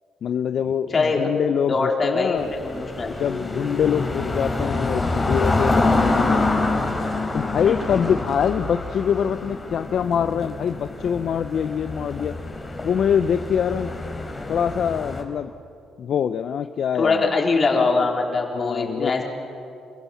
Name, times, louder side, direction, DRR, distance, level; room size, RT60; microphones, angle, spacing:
voice 1, 0.2-2.5 3.2-6.5 7.3-12.3 12.8-13.9 14.5-15.5 16.0-17.3 18.5-19.2, left 8 dB, 60° left, 10 dB, 0.6 m, -24 dB
voice 2, 0.9-1.3 1.7-3.1 7.6-7.8 16.9-19.2, left 3 dB, 35° left, 0 dB, 4.0 m, -22 dB
sound 1, 2.4-15.2, left 2 dB, 20° left, 3.8 m, -26 dB
27.5 x 16.0 x 7.2 m, 2.5 s
cardioid pair, 90°, 0 cm